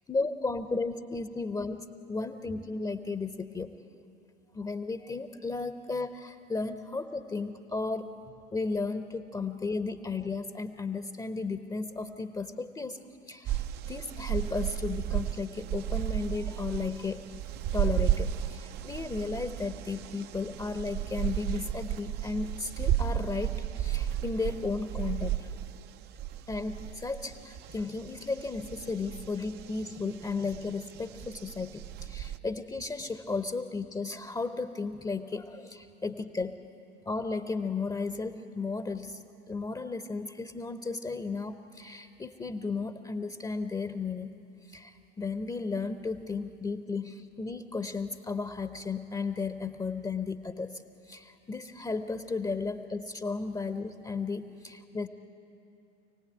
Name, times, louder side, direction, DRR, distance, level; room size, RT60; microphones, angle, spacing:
voice 1, 0.1-3.8 4.5-8.1 8.5-13.0 13.3-17.3 17.7-25.5 26.5-36.6 37.1-44.3 44.7-55.1, left 4 dB, 10° left, 10 dB, 0.8 m, -34 dB
sound 1, 13.4-32.4, right 11 dB, 30° right, 0.5 m, -34 dB
27.5 x 18.0 x 9.0 m, 2.7 s
figure-of-eight pair, 80°, 36 cm